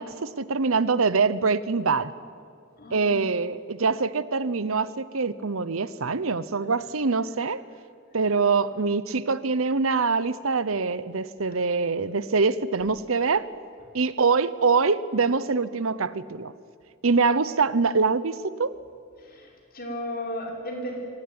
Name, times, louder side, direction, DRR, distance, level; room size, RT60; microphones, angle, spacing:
voice 1, 0.0-2.1 2.9-7.6 8.1-13.5 13.9-16.5 17.0-18.8, right 4 dB, 80° right, 16 dB, 0.9 m, -24 dB
voice 2, 2.8-3.2 19.2-21.1, equal, 50° left, 1 dB, 5.7 m, -35 dB
25.0 x 18.5 x 9.7 m, 2.3 s
head